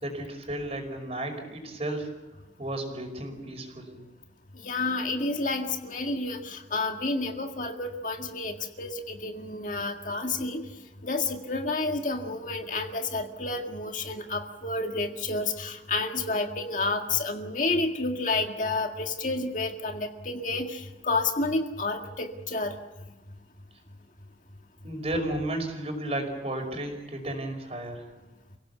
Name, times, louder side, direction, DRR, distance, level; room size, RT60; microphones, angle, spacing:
voice 1, 0.0-2.1 2.6-4.0 24.8-28.1, right 1 dB, 35° right, 4 dB, 5.4 m, -33 dB
voice 2, 4.6-10.6 11.0-22.7, left 3 dB, 45° left, 4 dB, 2.0 m, -30 dB
29.0 x 17.5 x 8.3 m, 1.1 s
head